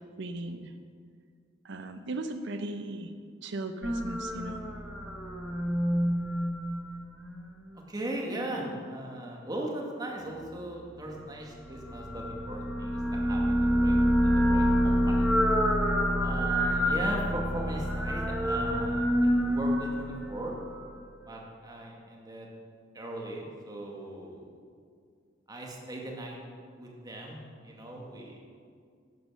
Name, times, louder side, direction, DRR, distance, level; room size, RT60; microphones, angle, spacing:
voice 1, 0.2-0.7 1.6-3.1 3.4-4.6, right 2 dB, 65° right, 8 dB, 0.7 m, -37 dB
sound 1, 3.8-7.4 11.7-20.9, equal, 5° right, 1.3 m, -27 dB
voice 2, 7.9-14.0 14.2-15.3 16.2-20.6 21.2-22.5 22.9-24.5 25.5-26.4 26.8-28.4, right 1 dB, 20° right, -1 dB, 2.0 m, -38 dB
11.5 x 9.5 x 6.3 m, 2.2 s
head